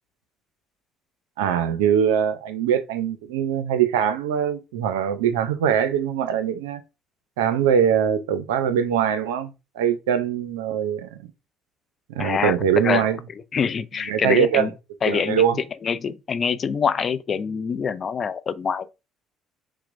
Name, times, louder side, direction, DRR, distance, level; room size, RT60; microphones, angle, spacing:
voice 1, 1.4-6.8 7.4-9.5 9.8-11.3 12.1-13.2 14.1-14.7 15.1-15.6, right 8 dB, 85° right, 0.4 m, -22 dB
voice 2, 12.2-12.6 12.8-13.1 13.5-14.7 15.0-15.4 15.8-18.9, left 6 dB, 45° left, 0.4 m, -25 dB
5.8 x 2.0 x 2.5 m
hypercardioid pair, 60°, 0 cm